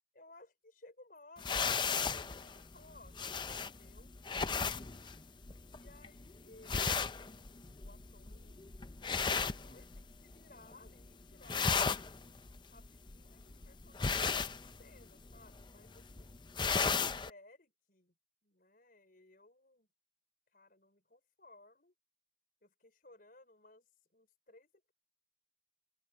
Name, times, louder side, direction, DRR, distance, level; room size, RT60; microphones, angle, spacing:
voice 1, 0.1-4.1 4.6-5.1 5.7-12.0 12.7-16.3 17.0-18.1 18.4-19.9 20.5-21.9 22.6-24.9, left 2 dB, 50° left, 5.1 m, -61 dB
sound 1, 1.4-10.3 10.6-11.1 11.3-17.3, left 5 dB, 25° left, 0.6 m, -36 dB
open air
head